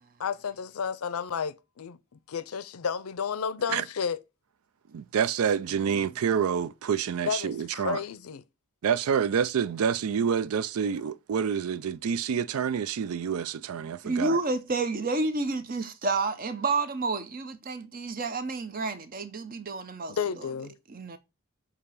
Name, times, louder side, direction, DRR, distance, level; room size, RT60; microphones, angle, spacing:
voice 1, 0.2-2.0 2.3-4.2 7.3-8.4 20.1-20.7, left 6 dB, 85° left, 0.5 m, -32 dB
voice 2, 4.9-8.0 8.8-14.4, right 7 dB, 85° right, 0.4 m, -28 dB
voice 3, 14.0-20.2 20.9-21.2, right 3 dB, 40° right, 0.7 m, -30 dB
6.6 x 2.9 x 5.4 m
head